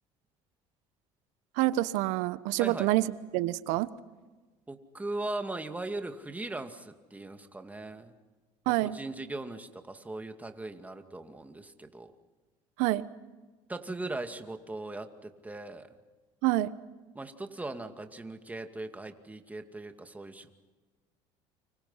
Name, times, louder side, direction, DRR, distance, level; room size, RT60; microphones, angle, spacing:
voice 1, 1.6-3.0 3.3-3.9 8.7-9.0 12.8-13.1 16.4-16.7, right 17 dB, 80° right, 16 dB, 1.0 m, -27 dB
voice 2, 4.7-8.1 8.7-12.1 13.7-15.9 17.1-20.5, right 2 dB, 10° right, 6 dB, 2.3 m, -39 dB
30.0 x 25.5 x 5.8 m, 1.3 s
supercardioid pair, 95°, 13 cm